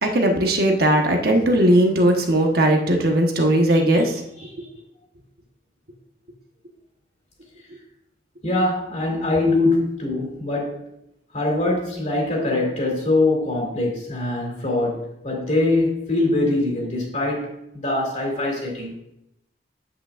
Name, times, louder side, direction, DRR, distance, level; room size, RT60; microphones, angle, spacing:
voice 1, 0.0-4.2, right 1 dB, 55° right, 2 dB, 1.1 m, -18 dB
voice 2, 8.4-10.8 11.3-18.9, left 2 dB, 40° left, -1 dB, 2.6 m, -23 dB
8.7 x 8.2 x 2.5 m, 0.79 s
head